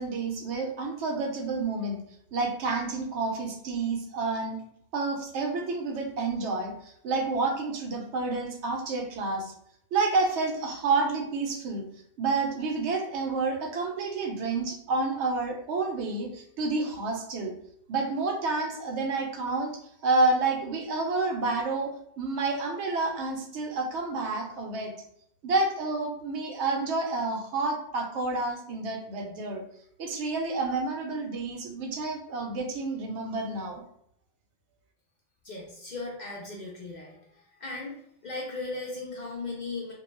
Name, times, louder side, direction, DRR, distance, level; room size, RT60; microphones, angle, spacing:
voice 1, 0.0-2.0 2.3-4.6 4.9-9.5 9.9-11.9 12.2-17.5 17.9-24.9 25.4-29.6 30.0-33.8, right 3 dB, 80° right, 2 dB, 0.9 m, -29 dB
voice 2, 35.4-37.2 37.6-39.9, left 3 dB, 55° left, -3 dB, 0.5 m, -37 dB
2.3 x 2.2 x 3.0 m, 0.70 s
omnidirectional pair, 1.2 m